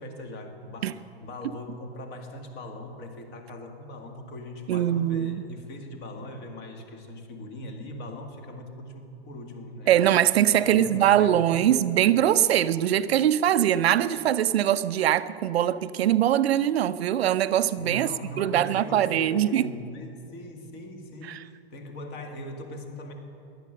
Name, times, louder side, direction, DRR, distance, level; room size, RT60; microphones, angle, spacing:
voice 1, 0.0-9.9 10.5-11.8 17.8-23.1, left 1 dB, 30° left, 2.0 m, -40 dB
voice 2, 4.7-5.4 9.9-18.1 18.4-19.7, right 11 dB, 75° right, 0.7 m, -22 dB
17.0 x 11.5 x 6.6 m
hypercardioid pair, 145°, 32 cm